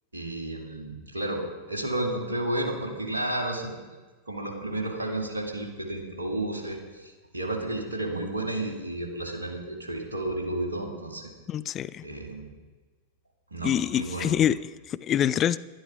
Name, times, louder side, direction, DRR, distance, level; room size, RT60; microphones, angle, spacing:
voice 1, 0.1-1.4 1.7-3.7 4.3-11.2 12.0-12.5 13.5-14.4, right 1 dB, 75° right, 0 dB, 2.5 m, -32 dB
voice 2, 11.5-12.0 13.6-14.6 14.9-15.6, left 10 dB, 30° left, 18 dB, 0.3 m, -25 dB
12.0 x 11.0 x 5.0 m, 1.3 s
figure-of-eight pair, 90°, 0 cm